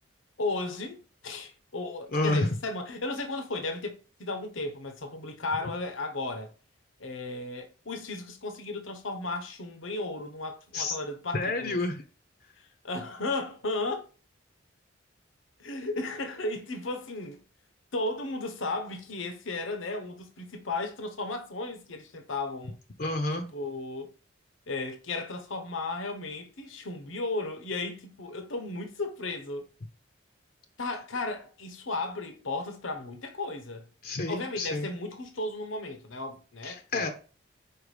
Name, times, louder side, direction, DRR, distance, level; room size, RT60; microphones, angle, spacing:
voice 1, 0.4-6.5 7.0-11.8 12.8-14.1 15.6-17.4 17.9-22.8 23.3-24.1 24.7-29.7 30.8-33.9 34.3-37.1, left 2 dB, 85° left, 1.1 m, -35 dB
voice 2, 2.1-2.5 10.7-11.0 11.3-12.0 23.0-23.4 34.0-34.9 36.6-37.1, left 2 dB, 50° left, 0.7 m, -29 dB
4.8 x 4.6 x 5.0 m
head